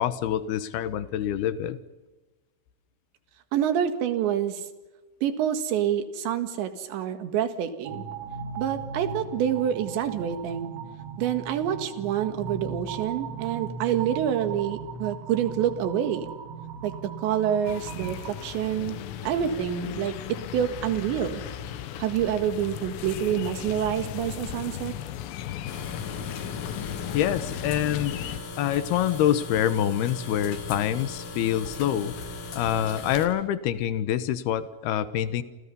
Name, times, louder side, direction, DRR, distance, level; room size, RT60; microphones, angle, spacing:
voice 1, 0.0-1.8 27.1-28.2 28.6-35.4, left 11 dB, 70° left, 13 dB, 2.7 m, -26 dB
voice 2, 3.5-4.6 5.2-8.1 8.6-10.7 11.2-16.3 16.8-19.0 19.2-21.4 22.0-24.9, right 9 dB, 70° right, 9 dB, 3.9 m, -27 dB
sound 1, 7.9-18.3, right 5 dB, 85° right, 5.1 m, -38 dB
sound 2, 17.7-28.4, left 10 dB, 90° left, 4.1 m, -36 dB
sound 3, 25.7-33.3, left 3 dB, 50° left, 4.4 m, -38 dB
29.0 x 28.0 x 5.5 m, 1.2 s
omnidirectional pair, 5.7 m